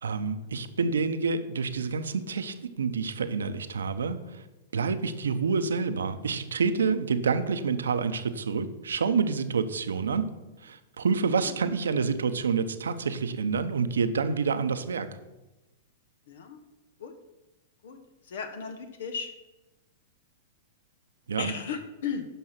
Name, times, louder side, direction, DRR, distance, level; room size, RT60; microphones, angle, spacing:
voice 1, 0.0-4.4 4.7-10.3 10.6-15.1 21.3-21.5, right 5 dB, 90° right, 11 dB, 0.8 m, -28 dB
voice 2, 16.3-16.6 17.0-17.1 17.8-18.0 18.2-19.3 21.4-22.3, left 6 dB, 75° left, 7 dB, 1.1 m, -35 dB
11.0 x 5.7 x 5.8 m, 1.1 s
hypercardioid pair, 125°, 0 cm